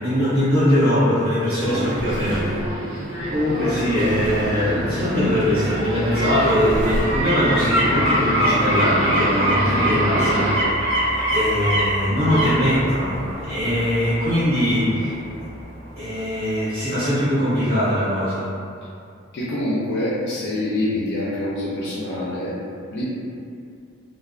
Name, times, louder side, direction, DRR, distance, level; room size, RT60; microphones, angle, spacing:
voice 1, 0.0-2.8 3.3-10.8 11.3-15.2 16.0-18.5, equal, 90° right, -18 dB, 1.0 m, -21 dB
Drawer open or close, 1.4-8.9 9.4-9.5, equal, 20° right, 0.4 m, -34 dB
Subway metro underground, 1.6-10.6, right 1 dB, 40° right, 1.0 m, -28 dB
sound 1, 3.2-16.0 16.4-16.5, equal, 65° right, 1.3 m, -25 dB
voice 2, 19.3-22.6 22.9-23.0, left 1 dB, 55° left, -8 dB, 0.4 m, -25 dB
2.5 x 2.1 x 2.4 m, 2.4 s
head